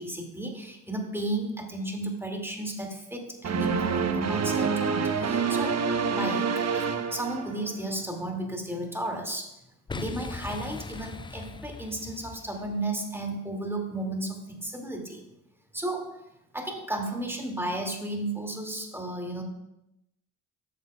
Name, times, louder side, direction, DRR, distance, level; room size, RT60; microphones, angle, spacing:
voice 1, 0.0-5.8 6.1-9.5 9.9-15.2 15.7-16.2 16.5-19.4, right 1 dB, 5° right, 1 dB, 2.5 m, -33 dB
sound 1, 3.4-7.9, right 5 dB, 35° right, 1.0 m, -27 dB
Boom, 9.9-12.9, left 4 dB, 10° left, 0.4 m, -39 dB
12.5 x 8.2 x 2.4 m, 0.86 s
figure-of-eight pair, 45°, 46 cm